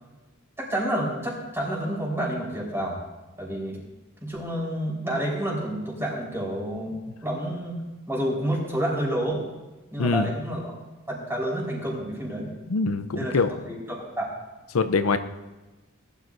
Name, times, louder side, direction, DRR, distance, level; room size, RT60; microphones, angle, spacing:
voice 1, 0.6-3.0 3.4-3.8 4.2-6.9 7.2-7.8 8.1-9.4 9.9-10.8 11.1-12.5 13.1-14.3, right 1 dB, 10° right, -4 dB, 4.3 m, -29 dB
voice 2, 12.7-13.5 14.7-15.2, left 4 dB, 70° left, 10 dB, 0.6 m, -23 dB
19.5 x 12.5 x 2.6 m, 1.1 s
head